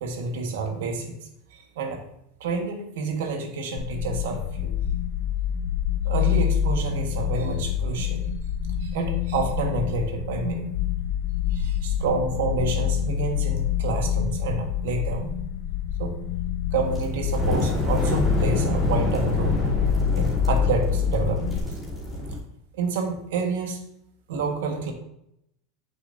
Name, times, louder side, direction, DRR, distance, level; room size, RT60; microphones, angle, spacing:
voice 1, 0.0-1.2 1.5-2.0 2.4-4.7 6.0-8.2 8.8-10.7 11.5-15.3 16.0-16.2 16.7-19.6 20.1-21.6 22.8-23.8 24.3-24.9, right 4 dB, 90° right, 3 dB, 1.5 m, -28 dB
sound 1, 3.8-21.6, left 9 dB, 60° left, 0.4 m, -26 dB
sound 2, 16.7-22.4, left 1 dB, ahead, 3.1 m, -28 dB
9.2 x 6.9 x 2.7 m, 0.77 s
supercardioid pair, 150°, 0 cm